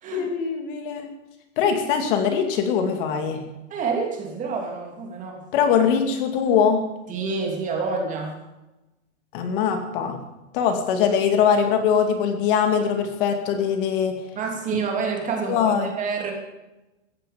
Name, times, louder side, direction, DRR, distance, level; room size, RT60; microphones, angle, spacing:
voice 1, 0.1-1.1 1.6-3.4 5.5-6.8 9.3-10.2 10.5-14.2 15.4-15.9, left 7 dB, 45° left, 5 dB, 2.3 m, -22 dB
voice 2, 3.7-5.4 7.1-8.3 14.4-16.3, right 4 dB, 20° right, 2 dB, 2.8 m, -28 dB
17.0 x 14.5 x 5.1 m, 1.0 s
supercardioid pair, 165°, 38 cm